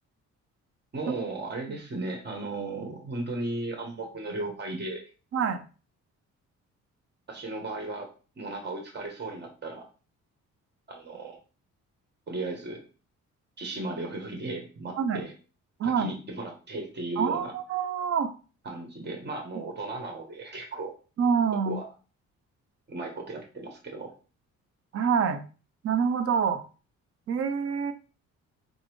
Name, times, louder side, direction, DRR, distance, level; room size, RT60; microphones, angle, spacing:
voice 1, 0.9-5.1 7.3-8.1 8.3-9.8 10.9-11.4 12.3-12.8 13.6-15.3 15.8-17.5 18.6-20.9 21.6-21.9 22.9-24.1, right 2 dB, 35° right, 2 dB, 1.2 m, -35 dB
voice 2, 15.8-16.1 17.2-18.3 21.2-21.8 24.9-25.4 25.8-26.6 27.3-27.9, right 6 dB, 50° right, 9 dB, 0.6 m, -26 dB
3.9 x 2.0 x 3.1 m, 0.35 s
cardioid pair, 90°, 30 cm